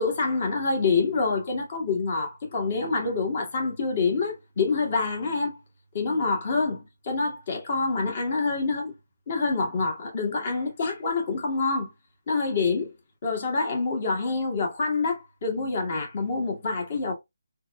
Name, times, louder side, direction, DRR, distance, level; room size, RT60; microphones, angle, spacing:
voice 1, 0.0-5.6 5.9-8.9 9.3-11.9 12.3-12.9 13.2-17.1, left 4 dB, 45° left, 1.8 m, -26 dB
3.9 x 3.3 x 2.3 m
figure-of-eight pair, 155°, 0 cm